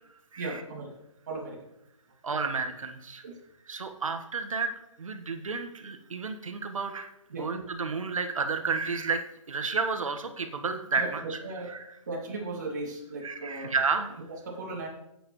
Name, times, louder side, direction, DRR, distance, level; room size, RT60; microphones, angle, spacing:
voice 1, 0.4-1.0 1.3-1.7 3.2-3.4 7.3-7.5 11.0-11.7 12.1-13.7 14.3-14.9, right 3 dB, 30° right, -2 dB, 2.6 m, -36 dB
voice 2, 2.2-3.2 3.7-4.7 5.0-7.1 7.4-11.4 11.7-11.8 13.2-14.1, right 4 dB, 70° right, 7 dB, 1.4 m, -31 dB
14.5 x 8.6 x 3.2 m, 0.86 s
hypercardioid pair, 180°, 18 cm